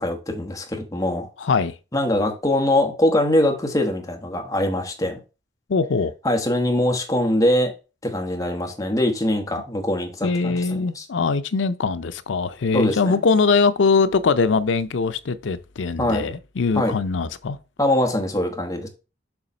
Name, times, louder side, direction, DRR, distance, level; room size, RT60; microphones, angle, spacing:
voice 1, 0.0-1.3 1.9-5.2 6.2-7.7 8.0-11.0 12.7-13.1 16.0-16.3 16.7-16.9 17.8-18.9, left 1 dB, 20° left, 1.2 m, -22 dB
voice 2, 1.4-1.7 5.7-6.1 10.2-17.6, left 4 dB, 80° left, 0.5 m, -21 dB
7.0 x 3.2 x 5.2 m
head